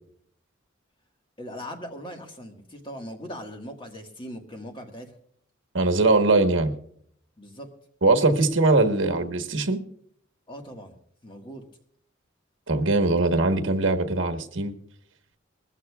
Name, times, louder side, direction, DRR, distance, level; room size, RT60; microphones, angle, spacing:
voice 1, 1.4-5.1 7.4-7.7 10.5-10.9 11.2-11.6, equal, 25° left, 3 dB, 1.7 m, -39 dB
voice 2, 5.7-6.7 8.0-9.8 12.7-14.7, right 2 dB, 70° right, 6 dB, 1.3 m, -21 dB
20.5 x 15.0 x 2.4 m, 0.64 s
head